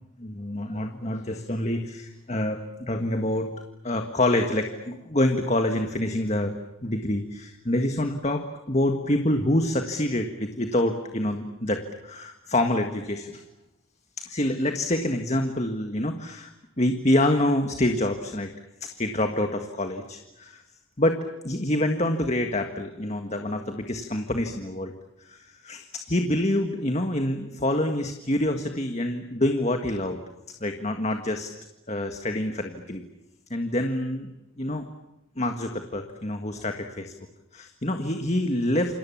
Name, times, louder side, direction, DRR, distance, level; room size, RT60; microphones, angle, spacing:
voice 1, 0.2-3.5 3.8-6.5 6.8-13.4 14.2-16.5 16.8-18.5 18.8-20.6 21.0-24.9 25.2-30.2 30.6-31.5 31.9-33.0 33.5-34.3 34.6-34.8 35.4-37.1 37.5-39.0, left 1 dB, 30° left, 5 dB, 1.7 m, -26 dB
29.0 x 27.0 x 7.3 m, 0.95 s
head